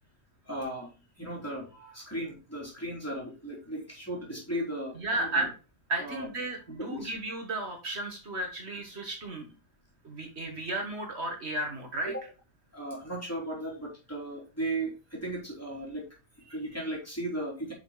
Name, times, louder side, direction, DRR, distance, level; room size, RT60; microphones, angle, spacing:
voice 1, 0.4-0.9 1.2-5.5 6.0-6.3 6.7-7.1 12.0-12.2 12.7-16.1 16.4-17.7, right 1 dB, 10° left, -3 dB, 3.5 m, -36 dB
voice 2, 5.0-5.5 5.9-9.5 10.0-12.1, right 2 dB, 60° right, 3 dB, 1.8 m, -33 dB
9.4 x 5.8 x 2.3 m, 0.31 s
omnidirectional pair, 1.3 m